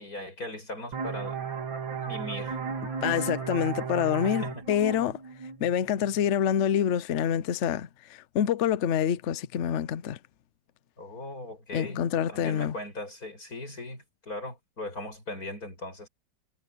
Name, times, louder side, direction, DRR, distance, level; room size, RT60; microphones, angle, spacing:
voice 1, 0.0-1.4 2.0-2.6 4.2-4.7 11.0-16.1, left 1 dB, 45° left, 8.7 m, -39 dB
sound 1, 0.9-6.3, right 5 dB, 70° right, 3.3 m, -35 dB
voice 2, 3.0-5.2 5.6-10.2 11.7-12.7, left 9 dB, 80° left, 0.6 m, -27 dB
omnidirectional pair, 2.2 m